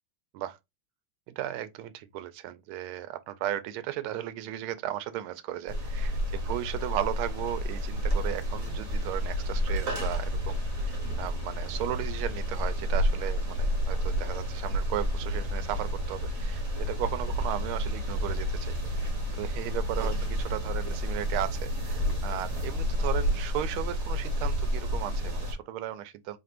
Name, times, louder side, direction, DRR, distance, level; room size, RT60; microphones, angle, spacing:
voice 1, 1.3-20.1 20.5-26.4, right 12 dB, 80° right, 1.4 m, -35 dB
sound 1, 5.7-25.5, equal, 45° right, 1.4 m, -32 dB
sound 2, 7.9-23.4, equal, 60° left, 1.3 m, -34 dB
4.4 x 3.5 x 2.4 m
omnidirectional pair, 2.3 m